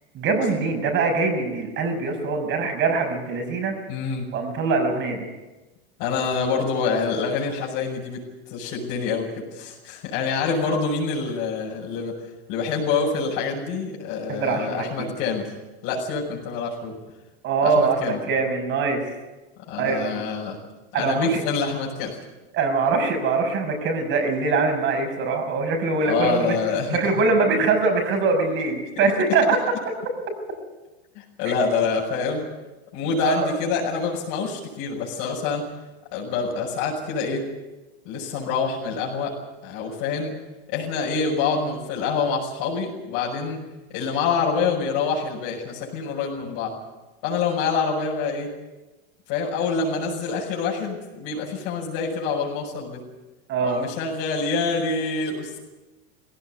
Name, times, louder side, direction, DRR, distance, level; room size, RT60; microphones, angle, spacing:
voice 1, 0.1-3.7 4.3-5.2 14.3-15.1 17.4-19.0 19.8-20.2 20.9-21.4 22.5-26.6 26.9-29.6 33.2-33.5 53.5-53.8, right 4 dB, 40° right, 5 dB, 6.1 m, -23 dB
voice 2, 3.9-4.3 6.0-8.2 8.5-12.1 12.5-15.5 15.8-16.9 17.6-18.2 19.7-20.6 21.0-22.2 26.0-27.0 31.1-32.5 32.9-35.6 36.1-37.5 38.0-39.3 39.6-40.4 40.7-43.6 43.9-46.7 47.2-48.5 49.3-53.0 53.6-55.6, left 5 dB, 50° left, -5 dB, 6.2 m, -26 dB
19.5 x 17.0 x 9.5 m, 1.1 s
supercardioid pair, 140°, 30 cm